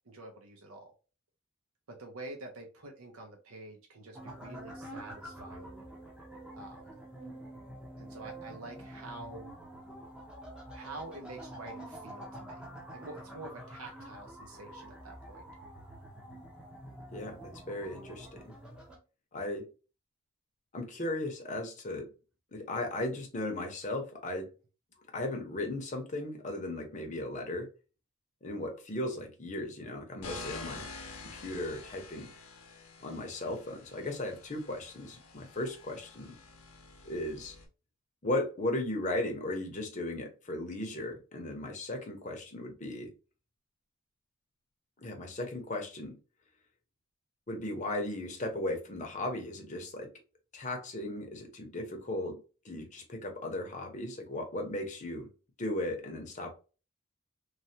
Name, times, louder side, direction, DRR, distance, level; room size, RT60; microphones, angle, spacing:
voice 1, 0.1-0.9 1.9-5.9 6.5-7.0 8.0-9.5 10.7-12.7 12.9-15.4, right 2 dB, 85° right, 0.7 m, -47 dB
sound 1, 4.1-19.0, right 1 dB, 5° right, 0.6 m, -47 dB
voice 2, 17.1-18.4 19.3-19.6 20.7-22.1 22.5-24.5 25.1-27.7 28.4-30.9 31.3-32.3 33.0-36.4 37.0-37.6 38.2-43.1 45.0-46.1 47.5-50.1 50.5-55.3 55.6-56.5, left 1 dB, 35° left, 0.7 m, -36 dB
sound 2, 30.2-37.7, left 3 dB, 85° left, 0.7 m, -48 dB
3.2 x 2.2 x 2.7 m
head